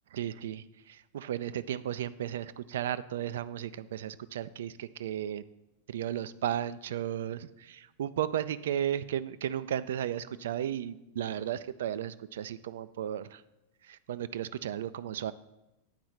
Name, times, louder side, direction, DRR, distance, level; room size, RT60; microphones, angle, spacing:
voice 1, 0.1-5.4 5.9-13.4 13.9-15.3, right 10 dB, 60° right, 15 dB, 0.3 m, -34 dB
8.8 x 4.6 x 6.0 m, 0.95 s
figure-of-eight pair, 90°, 0 cm